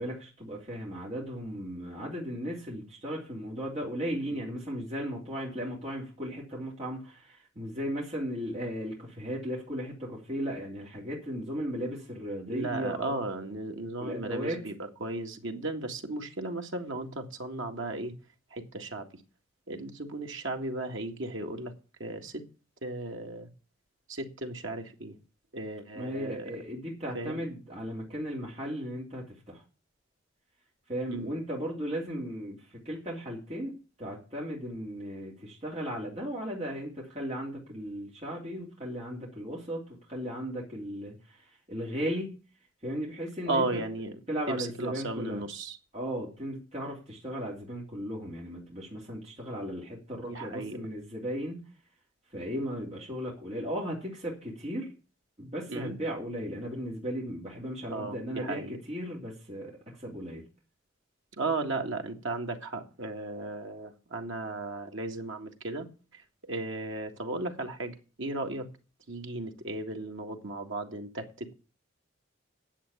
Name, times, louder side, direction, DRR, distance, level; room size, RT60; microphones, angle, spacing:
voice 1, 0.0-13.2 14.0-14.6 25.9-29.6 30.9-33.7 34.0-42.3 42.8-43.8 44.3-45.4 45.9-51.6 52.3-54.9 55.4-60.4, equal, 30° right, -4 dB, 3.3 m, -36 dB
voice 2, 12.5-14.7 15.0-18.1 18.5-19.1 19.7-21.7 22.0-22.4 22.8-23.5 24.1-25.2 25.5-26.6 27.1-27.4 31.1-31.3 43.5-44.2 44.5-45.8 50.2-50.8 55.7-56.0 57.9-58.7 61.4-65.9 66.1-68.7 69.1-71.5, right 2 dB, 70° right, 3 dB, 2.0 m, -35 dB
10.0 x 7.8 x 8.3 m, 0.34 s
head